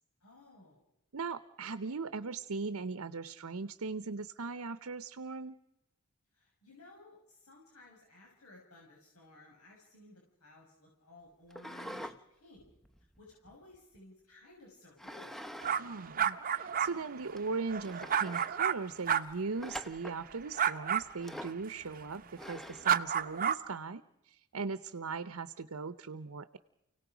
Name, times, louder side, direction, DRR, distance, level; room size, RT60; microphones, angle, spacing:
voice 1, 0.2-0.8 6.3-12.6 13.2-15.4, left 2 dB, 85° left, -2 dB, 6.2 m, -57 dB
voice 2, 1.1-5.6 15.8-26.6, right 4 dB, 75° right, 14 dB, 0.8 m, -39 dB
sound 1, 11.5-12.2 12.6-14.0 15.0-15.8 16.1-16.2 16.8-16.9 17.4-17.5 17.8-18.5 19.6-20.2 21.2-21.6 22.4-22.9, equal, ahead, 0.8 m, -45 dB
sound 2, 15.6-18.7 19.1-19.2 20.5-21.0 22.8-23.6, right 8 dB, 40° right, 0.7 m, -30 dB
29.5 x 17.5 x 5.1 m, 0.87 s
head